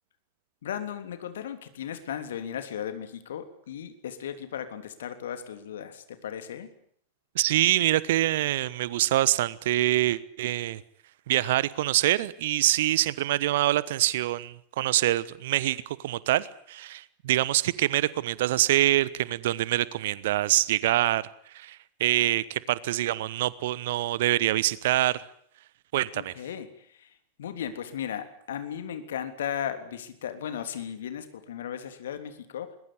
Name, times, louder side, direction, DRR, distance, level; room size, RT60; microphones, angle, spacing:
voice 1, 0.6-6.7 26.1-32.8, left 9 dB, 60° left, 9 dB, 3.3 m, -36 dB
voice 2, 7.3-10.8 11.3-21.2 21.5-25.2 25.9-26.3, right 14 dB, 55° right, 20 dB, 1.1 m, -25 dB
22.0 x 21.0 x 10.0 m, 0.63 s
figure-of-eight pair, 90°, 0 cm